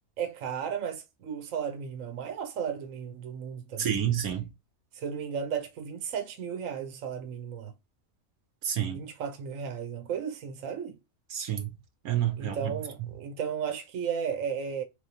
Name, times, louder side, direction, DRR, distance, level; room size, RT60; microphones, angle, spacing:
voice 1, 0.2-4.0 5.0-7.7 8.9-11.0 12.4-14.8, right 7 dB, 65° right, 1.2 m, -34 dB
voice 2, 3.8-4.5 8.6-9.0 11.3-11.7 12.0-12.7, right 10 dB, 85° right, 1.4 m, -29 dB
4.2 x 3.3 x 2.8 m
omnidirectional pair, 1.5 m